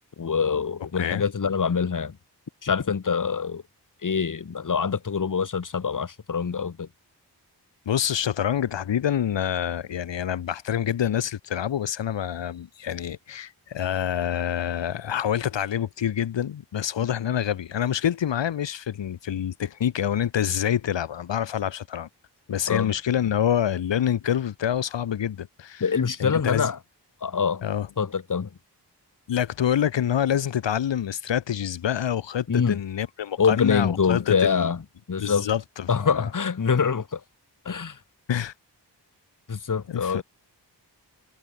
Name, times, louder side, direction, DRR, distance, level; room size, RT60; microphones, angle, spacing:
voice 1, 0.2-2.2 2.6-3.6 4.0-6.9 22.7-22.9 25.8-26.8 27.2-27.6 28.0-28.5 32.5-32.8 33.4-34.8 35.1-35.5 35.9-37.2 37.6-38.0 39.5-40.2, left 6 dB, 45° left, 0.9 m, -25 dB
voice 2, 7.9-22.1 22.5-25.8 26.2-26.7 27.6-27.9 29.3-34.7 35.2-36.1 38.3-38.5 39.9-40.2, left 9 dB, 85° left, 0.6 m, -26 dB
wide cardioid pair, 40°, 43 cm